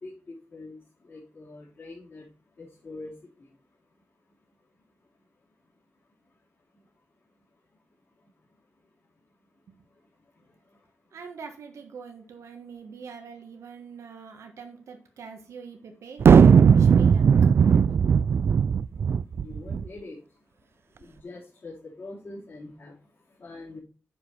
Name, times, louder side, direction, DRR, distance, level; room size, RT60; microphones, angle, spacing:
voice 1, 0.0-0.8 1.0-2.2 2.6-3.1 19.4-20.2 21.0-23.0 23.4-23.8, left 2 dB, 50° left, -7 dB, 3.2 m, -43 dB
voice 2, 11.1-16.2 16.7-17.3, right 5 dB, 85° right, 4 dB, 1.5 m, -43 dB
sound 1, 16.2-19.8, right 6 dB, 55° right, 0.3 m, -17 dB
7.9 x 4.9 x 5.4 m, 0.37 s
wide cardioid pair, 125°, 5 cm